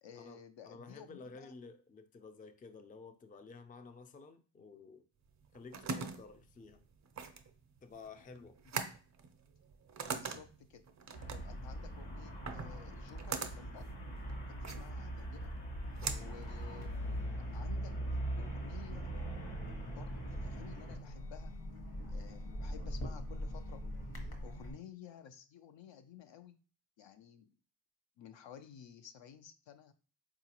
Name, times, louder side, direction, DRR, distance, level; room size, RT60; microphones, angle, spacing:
voice 1, 0.0-1.5 8.7-8.8 10.0-10.8 11.3-13.9 14.3-15.5 16.2-17.1 17.5-17.9 18.4-19.1 19.9-21.5 22.1-23.8 24.4-26.6 27.0-27.5 28.2-29.9, left 8 dB, 70° left, 8 dB, 0.6 m, -54 dB
voice 2, 0.6-5.0 5.5-6.9 7.8-8.6 16.0-16.4, left 4 dB, 20° left, 8 dB, 0.4 m, -52 dB
sound 1, 5.3-17.2, right 5 dB, 40° right, 0.5 m, -43 dB
Traffic noise roadway noise, 11.1-21.0, right 1 dB, 85° left, 1.1 m, -41 dB
sound 2, 16.0-24.7, equal, 55° left, 1.1 m, -44 dB
3.8 x 2.4 x 2.9 m, 0.37 s
cardioid pair, 55°, 47 cm